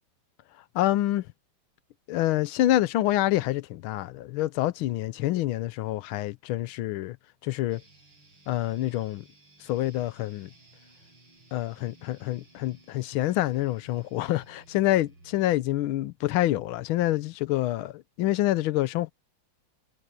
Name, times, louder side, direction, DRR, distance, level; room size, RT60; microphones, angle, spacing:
voice 1, 0.7-1.3 2.1-7.2 7.4-7.8 8.5-9.2 9.6-10.5 11.5-19.1, left 15 dB, 85° left, 1.5 m, -27 dB
sound 1, 7.7-15.7, right 2 dB, 85° right, 9.1 m, -57 dB
omnidirectional pair, 2.2 m